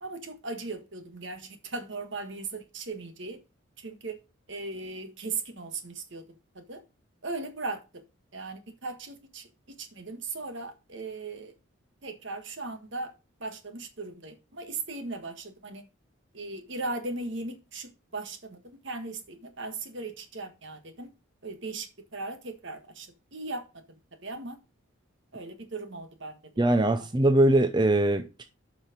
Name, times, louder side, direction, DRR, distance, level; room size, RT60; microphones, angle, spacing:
voice 1, 0.0-3.4 3.8-4.2 4.5-6.2 6.5-6.8 7.2-8.0 8.3-9.5 9.8-11.5 12.0-13.1 13.4-15.8 16.3-21.1 21.4-24.0 24.2-24.6 25.3-27.0, right 3 dB, 60° right, 1.5 m, -38 dB
voice 2, 26.6-28.4, right 1 dB, 20° right, 0.6 m, -22 dB
7.3 x 5.8 x 5.1 m
head